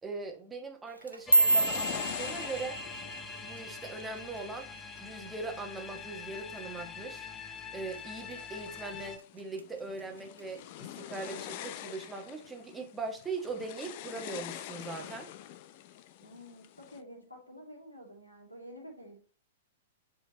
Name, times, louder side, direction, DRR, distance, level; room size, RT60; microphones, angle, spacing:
voice 1, 0.0-2.8 3.4-4.7 5.0-7.3 7.7-15.3, right 3 dB, 10° right, 1.2 m, -40 dB
sound 1, 0.9-5.3 5.6-6.0 6.4-6.8 7.2-7.4 8.0-8.4 8.8-9.6 10.0-10.4 11.2-11.3, right 2 dB, 85° right, 0.7 m, -30 dB
sound 2, 1.3-9.2, left 5 dB, 15° left, 0.9 m, -44 dB
sound 3, 1.5-6.2 6.8-7.3 7.8-17.0, left 12 dB, 45° left, 0.5 m, -45 dB
voice 2, 16.2-19.2, equal, 90° left, 2.4 m, -49 dB
7.3 x 4.6 x 2.9 m
figure-of-eight pair, 105°, 0 cm